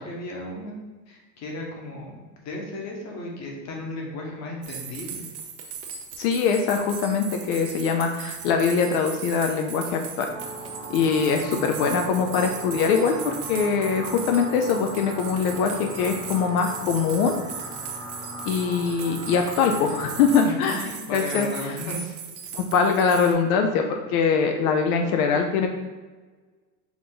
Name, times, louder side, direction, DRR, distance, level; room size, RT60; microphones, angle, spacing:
voice 1, 0.0-2.1 2.4-5.2 20.4-22.1, left 1 dB, 35° left, -1 dB, 1.1 m, -35 dB
sound 1, 4.6-23.3, right 7 dB, 85° right, 0.8 m, -38 dB
voice 2, 6.2-10.3 10.9-17.4 18.5-20.8 21.1-21.8 22.5-25.7, left 5 dB, 60° left, 4 dB, 0.6 m, -23 dB
sound 2, 10.3-20.4, right 1 dB, 10° right, 0.8 m, -38 dB
4.9 x 2.6 x 3.8 m, 1.3 s
supercardioid pair, 120°, 50 cm